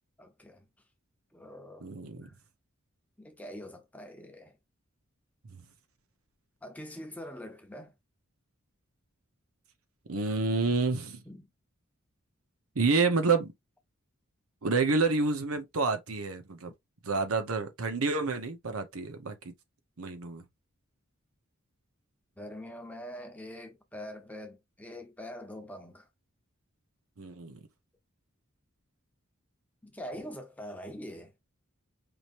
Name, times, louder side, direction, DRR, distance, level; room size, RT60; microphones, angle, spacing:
voice 1, 0.2-0.6 1.3-1.9 2.2-2.4 3.2-4.6 6.6-7.9 11.3-11.5 22.4-26.1 29.8-31.3, equal, 5° left, 0.8 m, -44 dB
voice 2, 1.8-2.3 10.1-11.2 12.7-13.5 14.6-16.7 17.0-19.5 20.0-20.4 27.2-27.6, right 4 dB, 85° right, 0.9 m, -29 dB
5.0 x 3.0 x 2.6 m
head